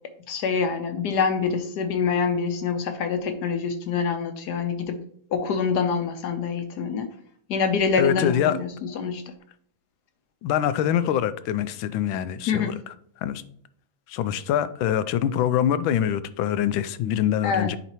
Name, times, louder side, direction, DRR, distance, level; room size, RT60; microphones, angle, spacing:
voice 1, 0.3-5.0 5.3-7.1 7.5-9.2 12.5-12.8 17.4-17.7, left 5 dB, 65° left, 1.1 m, -25 dB
voice 2, 8.0-8.6 10.4-12.9 13.2-13.4 14.1-17.8, left 10 dB, 90° left, 1.4 m, -24 dB
9.7 x 4.1 x 3.0 m
omnidirectional pair, 2.1 m